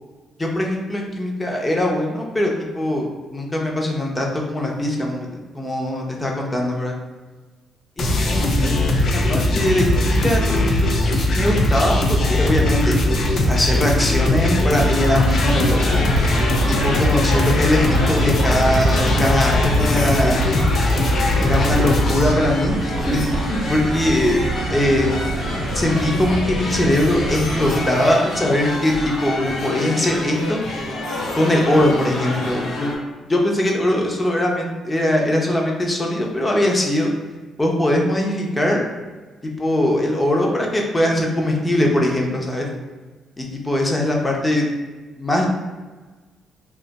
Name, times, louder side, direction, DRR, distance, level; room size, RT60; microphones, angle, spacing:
voice 1, 0.4-3.1 3.3-5.3 5.5-6.9 8.0-13.0 13.5-16.0 16.7-20.5 21.4-24.4 24.7-25.1 25.7-30.6 31.3-32.9 33.3-37.1 37.6-38.9 39.4-42.7 43.4-44.7 45.2-45.5, left 1 dB, 20° left, 0 dB, 0.7 m, -21 dB
sound 1, 8.0-22.3, left 1 dB, 55° left, 0.5 m, -20 dB
sound 2, 8.0-27.9, right 2 dB, 55° right, 0.4 m, -27 dB
sound 3, 14.7-33.0, left 1 dB, 80° left, 1.1 m, -28 dB
2.7 x 2.3 x 4.0 m, 1.3 s
cardioid pair, 90°, 0 cm